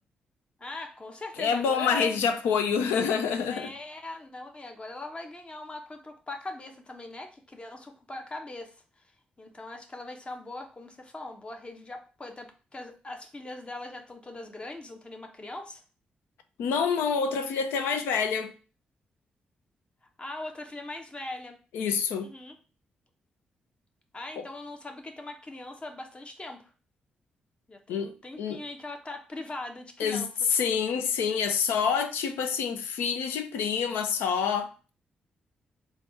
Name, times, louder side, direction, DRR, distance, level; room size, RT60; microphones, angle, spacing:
voice 1, 0.6-2.2 3.5-9.0 9.4-15.8 20.2-21.6 22.2-22.6 24.1-26.6 27.7-30.5, left 2 dB, 30° left, 0.9 m, -41 dB
voice 2, 1.4-3.7 16.6-18.5 21.7-22.3 24.4-24.5 27.9-28.1 28.4-28.6 30.0-34.7, left 6 dB, 80° left, 0.5 m, -27 dB
3.4 x 2.4 x 3.9 m
hypercardioid pair, 40°, 4 cm